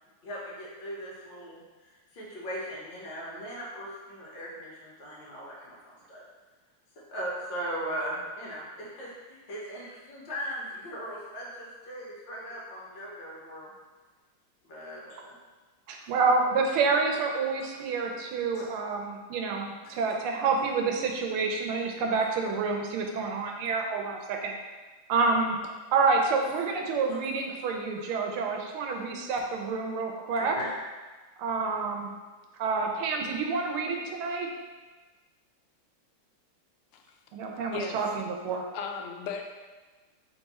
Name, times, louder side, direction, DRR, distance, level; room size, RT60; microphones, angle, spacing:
voice 1, 0.2-6.2 7.1-13.7 14.6-15.3 16.7-16.8 18.5-18.7 30.4-30.7, equal, 65° left, -5 dB, 1.7 m, -39 dB
voice 2, 15.9-24.5 25.1-25.6 25.9-30.6 31.4-32.1 32.6-34.5 37.3-38.6, right 4 dB, 85° right, 2 dB, 1.5 m, -28 dB
voice 3, 38.7-39.5, left 5 dB, 85° left, 3 dB, 1.4 m, -35 dB
3.6 x 3.5 x 4.1 m, 1.3 s
omnidirectional pair, 2.3 m